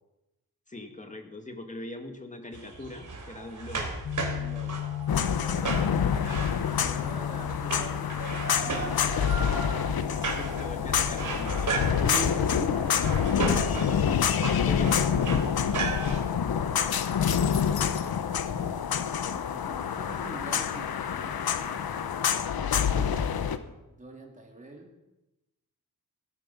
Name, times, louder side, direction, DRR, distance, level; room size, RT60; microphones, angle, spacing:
voice 1, 0.7-4.0 8.6-8.9 9.7-12.8 14.7-15.0, left 1 dB, 20° left, 5 dB, 2.1 m, -40 dB
sound 1, 2.5-16.2, right 3 dB, 55° right, 3.5 m, -35 dB
sound 2, 4.0-17.5, left 13 dB, 55° left, 0.6 m, -38 dB
voice 2, 4.3-4.8 5.4-6.2 6.5-8.1 8.4-9.4 14.9-15.4 16.0-17.0 19.3-21.9 22.6-23.2 23.9-24.9, right 2 dB, 20° right, 0 dB, 3.0 m, -46 dB
sound 3, 5.1-23.6, left 7 dB, 90° left, 1.1 m, -27 dB
18.0 x 13.0 x 5.5 m, 0.98 s
wide cardioid pair, 130°, 36 cm